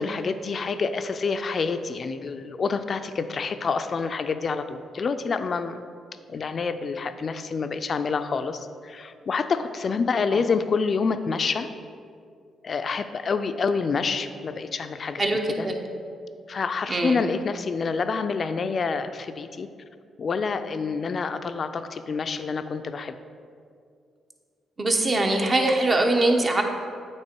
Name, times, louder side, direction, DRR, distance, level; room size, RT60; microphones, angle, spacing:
voice 1, 0.0-5.8 6.3-11.7 12.6-15.2 15.6-15.7 16.5-19.7 20.2-23.1, left 5 dB, 50° left, 9 dB, 0.4 m, -27 dB
voice 2, 15.2-15.7 16.9-17.2 24.8-26.6, right 2 dB, 35° right, 3 dB, 0.9 m, -22 dB
8.8 x 3.0 x 4.4 m, 2.3 s
supercardioid pair, 60°, 0 cm